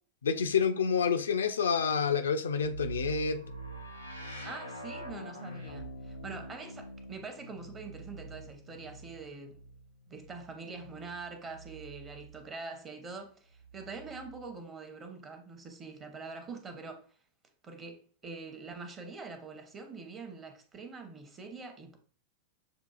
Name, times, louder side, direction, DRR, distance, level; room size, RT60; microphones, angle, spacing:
voice 1, 0.2-3.4, left 6 dB, 70° left, 0.3 m, -28 dB
sound 1, 2.6-12.5 13.5-14.5, right 2 dB, 90° right, 0.7 m, -45 dB
voice 2, 4.4-9.6 10.1-17.0 17.6-22.0, right 4 dB, 25° right, 0.8 m, -44 dB
6.7 x 2.3 x 2.3 m
figure-of-eight pair, 90°, 0 cm